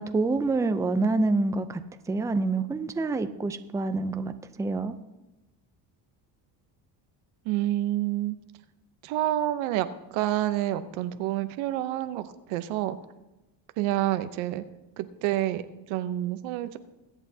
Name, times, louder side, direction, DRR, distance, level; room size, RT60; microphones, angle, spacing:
voice 1, 0.0-1.8 2.1-4.3 4.6-5.0, right 3 dB, 5° right, 9 dB, 0.4 m, -26 dB
voice 2, 7.4-8.4 9.0-9.9 10.1-13.0 13.8-14.6 15.0-16.8, right 14 dB, 90° right, 11 dB, 0.8 m, -28 dB
22.0 x 8.3 x 2.8 m, 1.0 s
cardioid pair, 105°, 46 cm